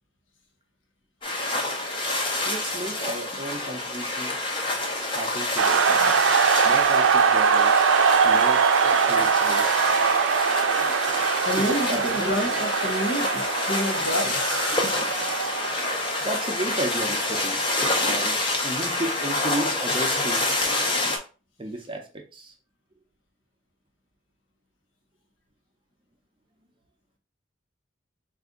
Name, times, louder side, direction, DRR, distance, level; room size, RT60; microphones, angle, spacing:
sound 1, 1.2-21.2, left 2 dB, 25° left, 0.6 m, -28 dB
voice 1, 2.5-4.4 4.9-5.9 6.6-7.9 8.2-8.7 9.1-9.7 11.6-12.3 16.2-17.6 18.0-20.5 21.6-22.5, right 1 dB, 25° right, 0.6 m, -33 dB
sound 2, 5.6-17.3, right 6 dB, 80° right, 0.4 m, -22 dB
voice 2, 11.4-14.4, equal, 80° left, 1.0 m, -28 dB
3.9 x 2.5 x 3.7 m
head